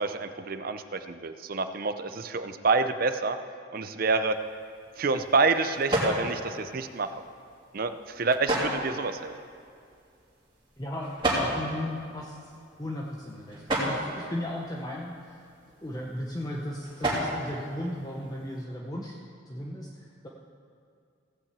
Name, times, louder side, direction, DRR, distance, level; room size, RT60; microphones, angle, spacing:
voice 1, 0.0-3.4 3.7-4.4 5.0-7.1 7.7-9.3, right 4 dB, 45° right, 10 dB, 0.6 m, -27 dB
sound 1, 4.3-18.6, right 1 dB, 25° right, 2.9 m, -35 dB
voice 2, 10.8-12.5 12.8-15.5 15.8-19.2 19.5-20.3, left 1 dB, 20° left, -2 dB, 0.8 m, -36 dB
16.5 x 5.9 x 8.1 m, 2.4 s
head